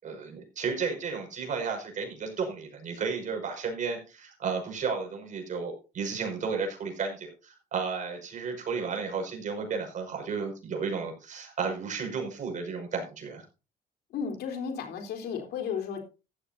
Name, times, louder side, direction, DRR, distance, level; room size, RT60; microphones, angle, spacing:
voice 1, 0.0-13.4, right 5 dB, 50° right, 3 dB, 5.8 m, -33 dB
voice 2, 14.1-16.0, left 6 dB, 75° left, 4 dB, 3.9 m, -33 dB
15.0 x 13.0 x 2.8 m, 0.31 s
cardioid pair, 110°, 17 cm